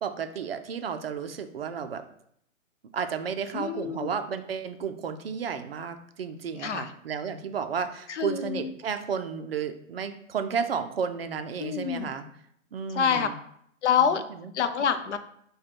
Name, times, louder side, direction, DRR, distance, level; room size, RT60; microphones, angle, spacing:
voice 1, 0.0-2.0 2.9-12.2 12.7-13.3 14.4-14.5, right 6 dB, 50° right, 8 dB, 0.4 m, -32 dB
voice 2, 3.5-4.1 6.6-6.9 8.1-8.7 11.6-12.1 12.9-13.3 13.8-14.2 14.5-15.2, left 7 dB, 60° left, 9 dB, 0.6 m, -26 dB
5.0 x 2.2 x 4.4 m, 0.71 s
hypercardioid pair, 150°, 39 cm